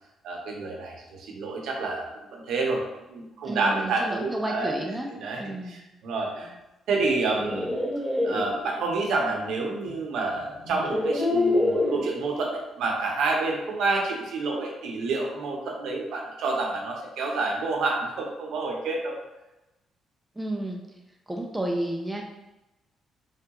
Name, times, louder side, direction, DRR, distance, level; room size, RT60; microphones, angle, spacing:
voice 1, 0.2-2.8 3.1-4.8 5.1-6.6 6.9-7.7 8.2-19.2, right 3 dB, 80° right, 0 dB, 0.7 m, -29 dB
voice 2, 3.4-5.1 5.4-5.8 20.4-20.8 21.3-22.2, right 1 dB, 10° right, 0 dB, 0.4 m, -31 dB
sound 1, 7.1-8.4 9.9-10.0 10.6-12.0, left 2 dB, 15° left, 1.2 m, -25 dB
3.2 x 2.3 x 2.8 m, 0.99 s
cardioid pair, 90°, 0 cm